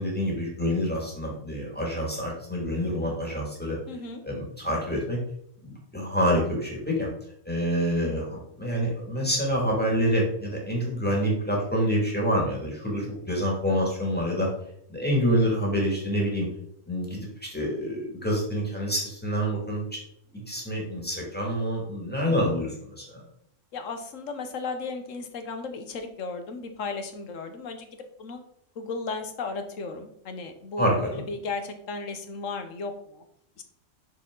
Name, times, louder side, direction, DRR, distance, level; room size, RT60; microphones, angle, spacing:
voice 1, 0.0-3.8 4.2-5.2 5.7-7.1 7.5-14.5 14.9-16.5 16.9-20.0 20.5-23.2 30.8-31.2, equal, 5° left, -3 dB, 2.3 m, -27 dB
voice 2, 3.9-4.2 15.3-15.5 22.3-22.5 23.7-27.9 28.2-28.4 28.8-33.2 33.6-33.7, left 4 dB, 75° left, 7 dB, 1.3 m, -35 dB
6.3 x 6.2 x 3.9 m, 0.72 s
omnidirectional pair, 1.3 m